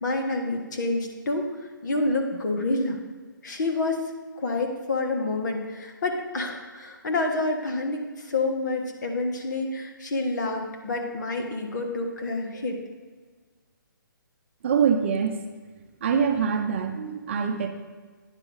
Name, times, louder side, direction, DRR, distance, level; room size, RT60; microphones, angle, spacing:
voice 1, 0.0-3.0 3.4-4.0 4.4-12.8, left 2 dB, 60° left, 2 dB, 1.5 m, -28 dB
voice 2, 14.6-15.4 16.0-17.7, right 6 dB, 35° right, 5 dB, 0.7 m, -24 dB
9.8 x 6.2 x 3.9 m, 1.4 s
hypercardioid pair, 160°, 11 cm